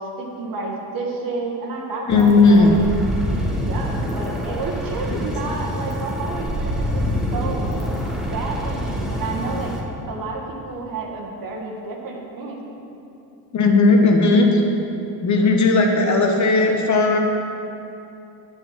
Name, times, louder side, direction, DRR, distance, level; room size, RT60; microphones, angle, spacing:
voice 1, 0.0-2.7 3.7-7.6 8.3-9.7 10.1-12.8, right 3 dB, 50° right, 0 dB, 1.6 m, -30 dB
voice 2, 2.1-2.7 5.1-5.2 13.5-14.6 15.2-17.2, left 3 dB, 40° left, 2 dB, 1.1 m, -16 dB
sound 1, 2.1-9.8, equal, ahead, 1.3 m, -26 dB
7.3 x 5.5 x 7.3 m, 2.7 s
supercardioid pair, 95°, 44 cm